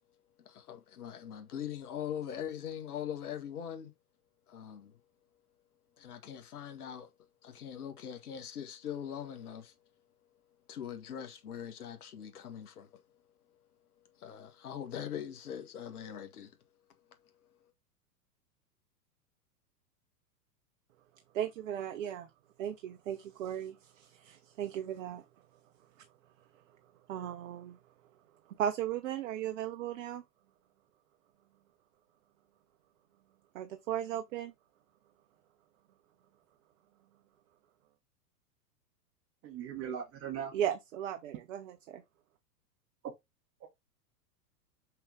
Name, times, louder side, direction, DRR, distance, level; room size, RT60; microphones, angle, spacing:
voice 1, 0.5-3.9 4.5-5.0 6.0-7.1 7.4-9.7 10.7-13.0 14.2-16.6, left 9 dB, 65° left, 2.0 m, -42 dB
voice 2, 21.3-22.3 22.6-25.2 27.1-27.8 28.6-30.2 33.5-34.5 40.5-42.0, right 10 dB, 50° right, 1.0 m, -36 dB
voice 3, 39.4-40.5, right 8 dB, 30° right, 1.8 m, -39 dB
5.8 x 5.4 x 3.6 m
figure-of-eight pair, 100°, 48 cm